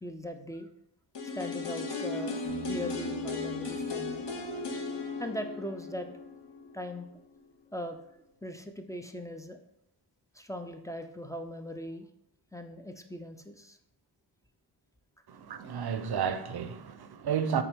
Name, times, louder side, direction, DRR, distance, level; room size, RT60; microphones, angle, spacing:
voice 1, 0.0-0.7 1.3-2.4 2.7-4.3 5.2-6.1 6.7-7.1 7.7-8.0 8.4-9.6 10.3-12.1 12.5-13.8, equal, 5° left, 0.4 m, -39 dB
sound 1, 1.1-7.1 7.4-7.5, left 4 dB, 60° left, 0.9 m, -36 dB
Piano, 2.4-6.1, right 7 dB, 90° left, 1.4 m, -45 dB
voice 2, 15.3-17.6, right 7 dB, 50° right, 0.6 m, -32 dB
5.7 x 2.3 x 3.5 m
cardioid pair, 45°, 49 cm